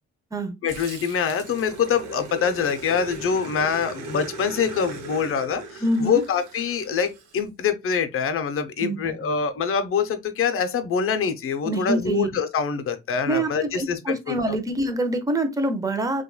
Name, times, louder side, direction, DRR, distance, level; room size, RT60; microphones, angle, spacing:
voice 1, 0.6-14.6, left 6 dB, 45° left, 0.6 m, -25 dB
Growling, 0.7-7.4, right 3 dB, 75° right, 0.8 m, -38 dB
voice 2, 5.8-6.2 8.8-9.3 11.6-12.3 13.2-16.2, right 1 dB, 10° right, 0.6 m, -25 dB
2.9 x 2.3 x 2.2 m
supercardioid pair, 70°, 30 cm